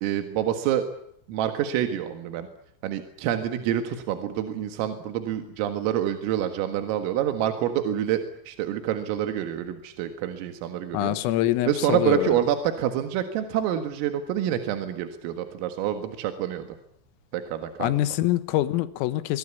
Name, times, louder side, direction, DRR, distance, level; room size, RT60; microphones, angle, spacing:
voice 1, 0.0-0.9 1.3-2.5 2.8-11.2 11.7-16.8 17.3-18.0, right 10 dB, 80° right, 7 dB, 4.4 m, -27 dB
voice 2, 10.9-12.4 17.8-19.4, left 15 dB, 85° left, 14 dB, 3.8 m, -25 dB
24.5 x 23.0 x 8.4 m, 0.70 s
omnidirectional pair, 5.9 m